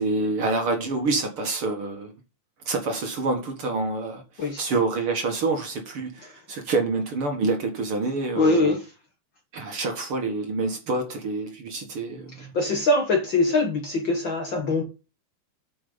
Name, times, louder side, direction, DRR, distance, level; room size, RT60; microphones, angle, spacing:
voice 1, 0.0-2.1 2.7-8.8 9.5-12.5, right 3 dB, 50° right, 2.2 m, -27 dB
voice 2, 8.3-8.8 12.5-14.8, left 2 dB, 50° left, 1.6 m, -22 dB
8.7 x 5.6 x 5.5 m
omnidirectional pair, 3.6 m